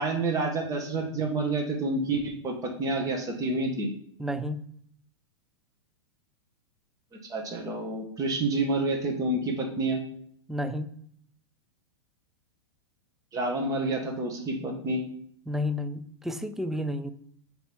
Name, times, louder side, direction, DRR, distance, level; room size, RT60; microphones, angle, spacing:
voice 1, 0.0-3.9 7.3-10.0 13.3-15.0, right 2 dB, 25° right, 2 dB, 1.5 m, -28 dB
voice 2, 4.2-4.6 10.5-10.9 15.5-17.1, left 1 dB, ahead, 11 dB, 0.4 m, -31 dB
7.7 x 4.6 x 3.5 m, 0.67 s
hypercardioid pair, 105°, 14 cm